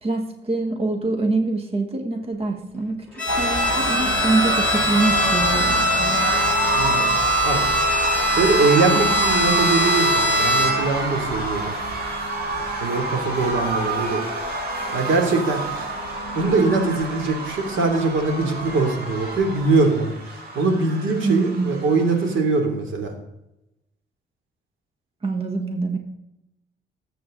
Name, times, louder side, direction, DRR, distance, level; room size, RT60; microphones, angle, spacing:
voice 1, 0.0-6.2 21.2-21.8 25.2-26.0, right 3 dB, 30° right, 4 dB, 1.4 m, -25 dB
Bowed string instrument, 3.2-11.0, left 1 dB, 5° left, 2.8 m, -22 dB
sound 1, 3.3-22.3, right 2 dB, 55° right, 4.9 m, -27 dB
voice 2, 6.7-7.1 7.4-7.6 8.4-11.7 12.8-14.3 14.9-15.9 16.3-23.1, right 3 dB, 85° right, 4 dB, 2.9 m, -22 dB
19.0 x 7.9 x 3.8 m, 0.89 s
cardioid pair, 145°, 19 cm